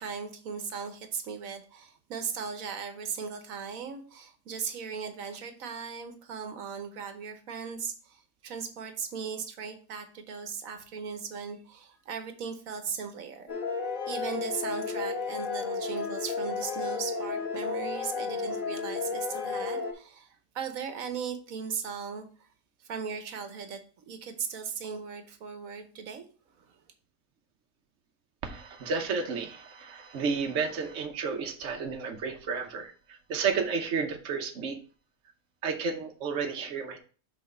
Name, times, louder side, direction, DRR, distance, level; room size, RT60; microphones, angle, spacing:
voice 1, 0.0-13.5 14.1-22.3 22.8-23.8 24.1-26.3 26.6-26.7, right 6 dB, 85° right, 7 dB, 1.3 m, -38 dB
sound 1, 13.5-19.9, left 5 dB, 80° left, 1.7 m, -33 dB
voice 2, 28.4-34.8 35.6-37.0, right 5 dB, 65° right, 3 dB, 1.2 m, -32 dB
5.8 x 4.0 x 5.3 m, 0.39 s
omnidirectional pair, 1.4 m